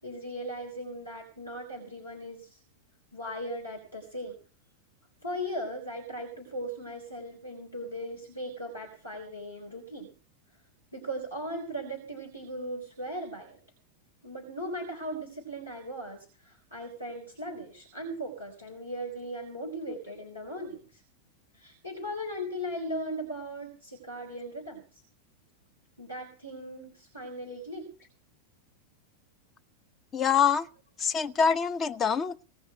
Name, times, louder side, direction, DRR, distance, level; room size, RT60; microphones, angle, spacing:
voice 1, 0.0-2.6 3.1-4.4 5.2-10.1 10.9-13.6 14.2-21.0 21.5-25.0 26.0-27.9, equal, 85° left, 4.1 m, -38 dB
voice 2, 30.1-30.7 31.0-32.5, left 7 dB, 25° left, 0.8 m, -25 dB
18.5 x 6.4 x 7.9 m
figure-of-eight pair, 90°, 0 cm